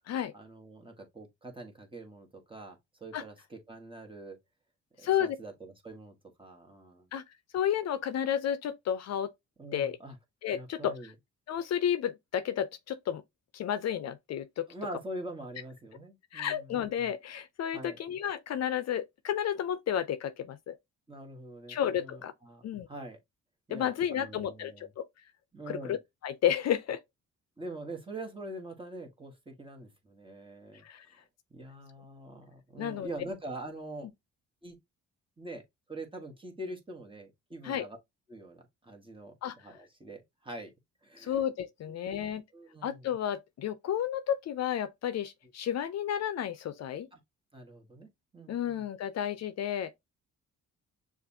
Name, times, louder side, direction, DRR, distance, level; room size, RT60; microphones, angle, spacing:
voice 1, 0.3-4.4 5.0-7.1 9.6-10.2 10.5-11.1 14.7-16.7 17.7-18.0 21.1-22.6 22.9-23.2 23.7-24.9 25.5-26.0 27.6-31.2 31.5-34.1 34.6-34.8 35.4-35.6 35.9-38.0 38.3-40.7 41.0-41.4 42.0-43.1 47.1-47.2 47.5-48.8, right 1 dB, 15° right, 1.5 m, -44 dB
voice 2, 5.0-5.4 7.1-7.2 7.5-9.3 9.7-10.0 10.4-11.1 11.5-13.2 13.5-14.7 16.3-20.7 21.7-22.3 22.6-22.9 23.7-25.0 25.7-27.0 30.8-31.1 32.8-33.1 37.6-37.9 39.4-39.8 41.2-42.4 42.8-47.1 48.5-49.9, left 9 dB, 60° left, 0.6 m, -32 dB
6.5 x 2.5 x 2.7 m
cardioid pair, 90°, 30 cm